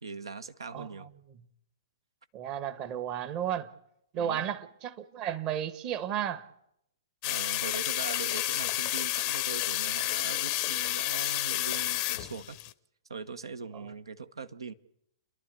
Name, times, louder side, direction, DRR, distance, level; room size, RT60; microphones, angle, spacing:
voice 1, 0.0-1.1 4.2-4.5 7.2-12.6 13.1-14.7, right 5 dB, 70° right, 0.9 m, -41 dB
voice 2, 0.7-1.4 2.3-3.7 4.1-6.5 13.8-13.9, right 9 dB, 30° right, 1.2 m, -34 dB
sound 1, 7.2-12.7, left 16 dB, 30° left, 0.7 m, -30 dB
29.5 x 11.5 x 8.2 m
figure-of-eight pair, 115°, 3 cm